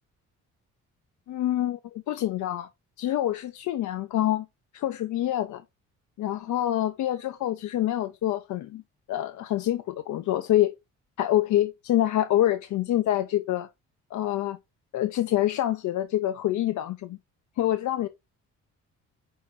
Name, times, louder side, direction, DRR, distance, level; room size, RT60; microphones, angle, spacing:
voice 1, 1.3-2.7 3.0-4.5 4.7-5.6 6.2-8.8 9.1-10.7 11.2-13.7 14.1-14.6 14.9-17.2 17.6-18.1, left 13 dB, 75° left, 0.7 m, -26 dB
5.7 x 4.2 x 4.1 m
cardioid pair, 90°, 30 cm